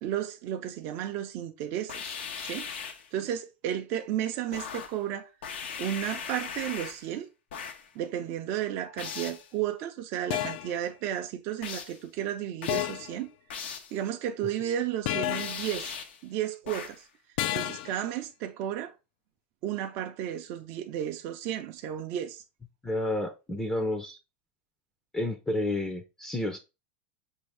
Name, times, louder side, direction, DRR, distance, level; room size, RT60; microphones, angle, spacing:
voice 1, 0.0-2.7 3.1-5.3 5.8-7.3 7.9-13.3 13.9-16.0 16.2-17.0 17.5-18.9 19.6-22.4, right 11 dB, 50° right, 0.5 m, -33 dB
sound 1, 1.9-3.1 4.5-5.0 5.4-7.1 7.5-7.9 9.0-9.5 11.6-12.0 12.6-13.0 13.5-14.0 15.3-16.2 16.7-17.1, left 6 dB, 80° left, 0.8 m, -39 dB
sound 2, 9.1-9.3 10.3-10.8 12.7-13.2 15.1-15.7 17.4-18.0, left 13 dB, 60° left, 0.4 m, -31 dB
voice 2, 22.8-24.2 25.1-26.6, left 1 dB, 10° left, 0.5 m, -30 dB
5.3 x 2.7 x 3.3 m
supercardioid pair, 120°, 6 cm